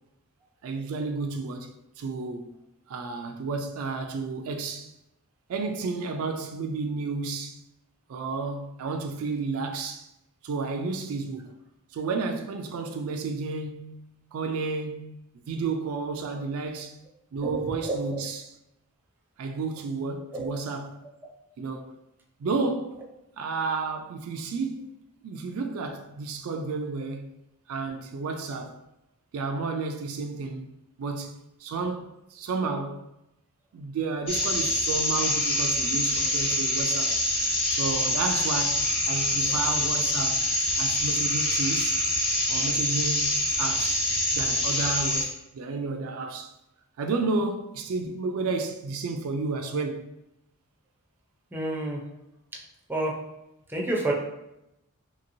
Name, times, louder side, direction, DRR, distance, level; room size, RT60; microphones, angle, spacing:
voice 1, 0.6-2.5 2.9-4.9 5.5-7.6 8.1-10.1 10.4-11.5 11.9-16.9 17.3-18.5 19.4-21.0 21.6-22.0 22.4-23.1 23.4-24.9 25.2-27.3 27.7-28.8 29.3-30.7 31.0-33.1 33.7-37.2 37.7-40.5 40.8-42.0 42.5-44.0 44.3-46.5 47.0-50.1, right 4 dB, 70° right, 0.3 m, -32 dB
voice 2, 17.4-18.2 20.3-20.6 39.5-39.6 51.5-52.0 52.9-53.2 53.7-54.1, right 2 dB, 10° right, 0.5 m, -29 dB
sound 1, 34.3-45.2, left 1 dB, 25° left, 0.8 m, -25 dB
2.9 x 2.8 x 2.6 m
head